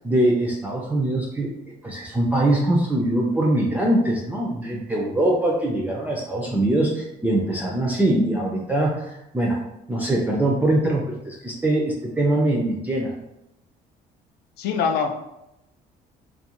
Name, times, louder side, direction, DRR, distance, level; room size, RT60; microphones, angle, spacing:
voice 1, 0.0-1.5 1.8-9.6 9.9-13.1, right 1 dB, 10° right, -2 dB, 0.4 m, -22 dB
voice 2, 14.6-15.3, left 6 dB, 75° left, 5 dB, 0.4 m, -24 dB
2.4 x 2.2 x 2.8 m, 0.85 s
cardioid pair, 110°, 17 cm